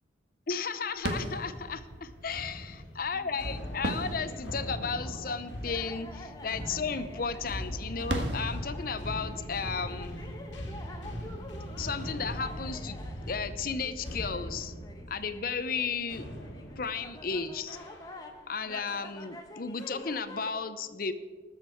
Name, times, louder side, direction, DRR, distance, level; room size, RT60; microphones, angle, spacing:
voice 1, 0.5-10.3 11.8-13.0 13.2-14.7 15.1-16.2 16.8-17.8 18.5-21.1, left 5 dB, 50° left, 12 dB, 0.7 m, -34 dB
sound 1, 1.0-11.6, right 1 dB, 70° right, 1.5 m, -40 dB
sound 2, 1.9-18.4 18.9-19.2 19.8-20.3, equal, 85° left, 2.0 m, -41 dB
sound 3, 3.1-20.5, left 1 dB, 20° left, 1.1 m, -49 dB
19.5 x 7.5 x 4.5 m, 1.5 s
head